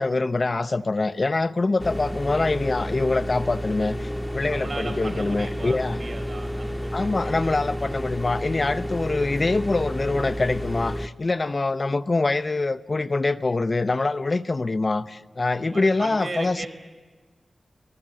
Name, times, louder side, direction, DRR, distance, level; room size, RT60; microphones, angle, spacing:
voice 1, 0.0-6.0 6.9-16.7, left 3 dB, 45° left, 0.6 m, -24 dB
sound 1, 1.8-11.1, equal, 5° left, 0.9 m, -31 dB
voice 2, 4.5-7.8 15.6-16.7, right 3 dB, 65° right, 4.4 m, -37 dB
24.0 x 18.5 x 7.7 m
wide cardioid pair, 75°, 0 cm